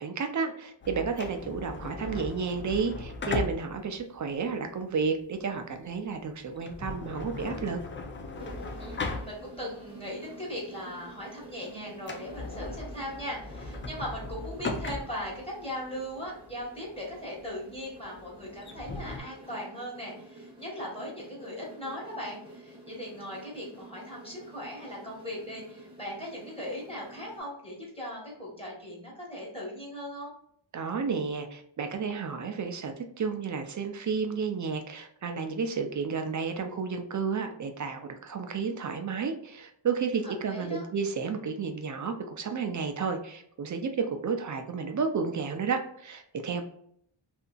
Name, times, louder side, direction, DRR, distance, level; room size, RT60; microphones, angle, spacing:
voice 1, 0.0-7.8 30.7-46.7, right 5 dB, 40° right, 6 dB, 0.4 m, -32 dB
sound 1, 0.8-9.8 10.2-10.3 10.9-11.2 11.5-11.6 11.9-19.2, left 3 dB, 25° left, 0.4 m, -38 dB
sound 2, 8.3-27.4, right 1 dB, 10° right, 0.9 m, -49 dB
voice 2, 8.8-30.3 40.2-40.8, equal, 10° left, -4 dB, 1.2 m, -39 dB
2.7 x 2.5 x 2.3 m, 0.66 s
wide cardioid pair, 85°, 47 cm